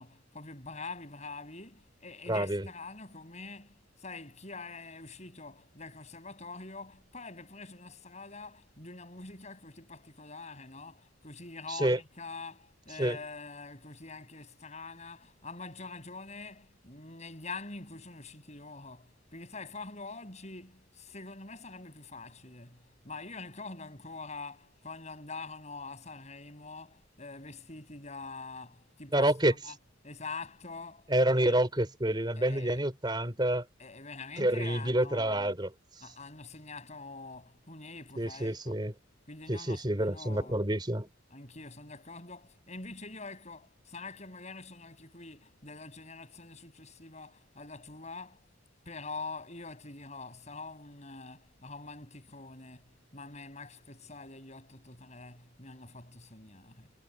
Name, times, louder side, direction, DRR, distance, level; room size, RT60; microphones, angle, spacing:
voice 1, 0.0-29.3 29.6-29.7 30.0-31.6 32.4-32.8 33.8-35.6 36.0-38.8 39.3-40.6 41.3-48.5 48.9-56.9, left 3 dB, 35° left, 7.2 m, -45 dB
voice 2, 2.3-2.7 11.7-12.0 13.0-13.2 29.1-29.5 31.1-33.7 34.4-36.0 38.2-38.9 39.5-41.1, right 1 dB, 20° right, 3.7 m, -28 dB
head